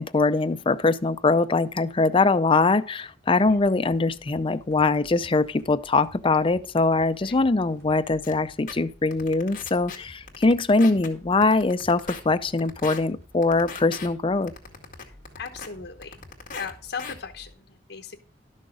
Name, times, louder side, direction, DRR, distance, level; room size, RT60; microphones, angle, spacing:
voice 1, 0.0-14.5, left 3 dB, 30° left, 0.5 m, -22 dB
sound 1, 3.4-17.5, left 1 dB, 60° right, 3.0 m, -52 dB
sound 2, 8.2-8.3 8.7-8.8 9.1-10.0 10.3-11.1 11.4-12.2 12.6-13.0 13.4-14.1 14.5-15.7 16.0-16.7 17.0-17.1, left 5 dB, 50° left, 2.1 m, -37 dB
voice 2, 15.0-16.2 16.5-18.2, left 6 dB, 70° left, 1.0 m, -38 dB
12.0 x 6.4 x 5.0 m
head